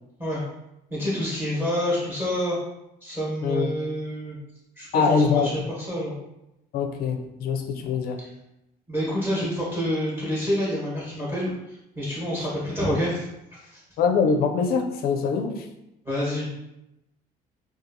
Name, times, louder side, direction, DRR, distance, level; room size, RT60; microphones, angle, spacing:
voice 1, 0.9-2.6 3.0-4.4 4.8-5.6 5.9-6.1 8.9-13.8 16.0-16.5, equal, 10° right, -6 dB, 1.1 m, -28 dB
voice 2, 3.4-3.7 4.9-5.5 6.7-8.2 14.0-15.7, left 5 dB, 65° left, 4 dB, 0.4 m, -23 dB
2.7 x 2.3 x 2.6 m, 0.89 s
cardioid pair, 110°, 17 cm